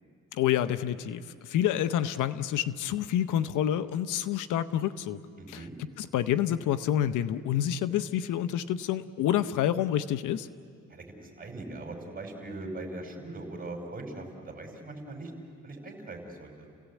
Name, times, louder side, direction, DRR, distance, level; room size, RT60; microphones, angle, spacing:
voice 1, 0.3-5.2 5.5-5.6 6.0-10.5, left 11 dB, 85° left, 12 dB, 0.8 m, -28 dB
voice 2, 5.4-5.7 10.9-15.3 15.6-16.7, right 2 dB, 30° right, 3 dB, 5.1 m, -41 dB
30.0 x 17.0 x 8.4 m, 2.2 s
cardioid pair, 90°, 30 cm